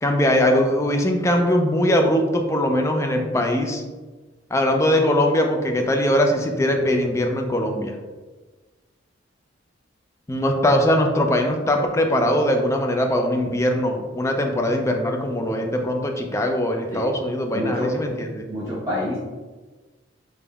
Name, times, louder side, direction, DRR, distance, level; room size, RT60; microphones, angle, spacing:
voice 1, 0.0-3.8 4.5-7.9 10.3-18.4, left 1 dB, 15° left, 3 dB, 0.4 m, -21 dB
voice 2, 17.5-17.9 18.5-19.2, left 1 dB, 15° right, -9 dB, 1.0 m, -27 dB
3.9 x 3.5 x 2.3 m, 1.3 s
head